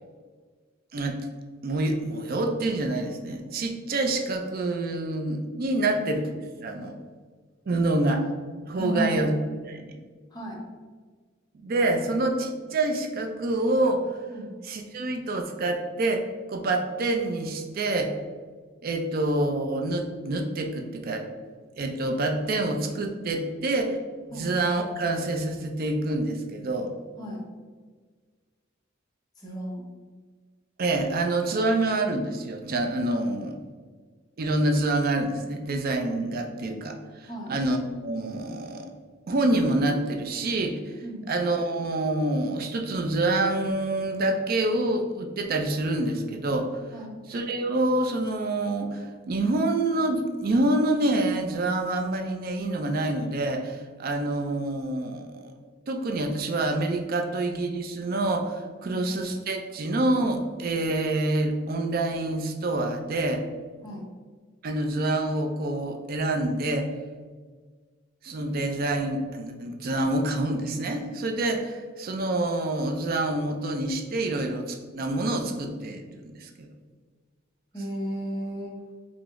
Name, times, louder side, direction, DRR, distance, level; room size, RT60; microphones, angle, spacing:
voice 1, 1.6-6.3 6.6-6.9 7.7-8.2 8.6-9.3 9.6-10.0 11.6-14.1 14.6-18.1 18.8-21.3 21.8-24.0 24.3-26.9 30.8-33.6 34.4-38.9 39.3-46.8 47.3-55.5 55.9-63.4 64.6-66.9 68.2-76.7, right 2 dB, 50° right, 4 dB, 0.4 m, -27 dB
voice 2, 8.8-9.2 10.3-10.6 14.3-14.5 24.3-24.5 27.2-27.4 29.4-29.8 37.3-37.5 41.0-41.3 46.9-47.2 58.8-59.0 63.8-64.0 77.7-78.7, equal, 20° left, -3 dB, 0.8 m, -33 dB
4.9 x 2.0 x 3.5 m, 1.5 s
head